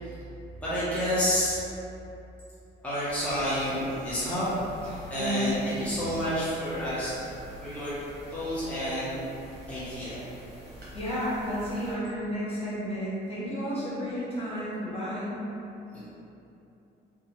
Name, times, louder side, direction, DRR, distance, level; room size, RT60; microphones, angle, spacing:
voice 1, 0.6-1.6 2.8-4.5 4.8-7.2 7.6-8.0 8.3-9.1 9.7-10.2 15.9-16.1, equal, 5° left, -12 dB, 0.8 m, -29 dB
sound 1, 3.1-11.9, equal, 55° right, 0.9 m, -46 dB
voice 2, 5.1-5.6 10.9-15.4, equal, 30° left, -9 dB, 1.1 m, -32 dB
2.9 x 2.4 x 2.8 m, 2.8 s
cardioid pair, 90°, 20 cm